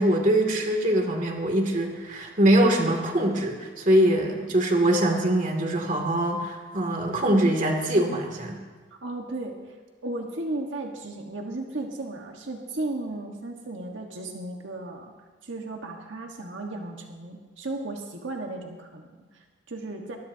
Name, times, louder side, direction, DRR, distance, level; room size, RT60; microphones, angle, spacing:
voice 1, 0.0-8.6, right 1 dB, 45° right, 2 dB, 2.6 m, -23 dB
voice 2, 9.0-9.8 10.0-15.1 15.4-20.2, right 2 dB, 85° right, 1 dB, 1.5 m, -35 dB
24.0 x 20.5 x 2.9 m, 1.4 s
head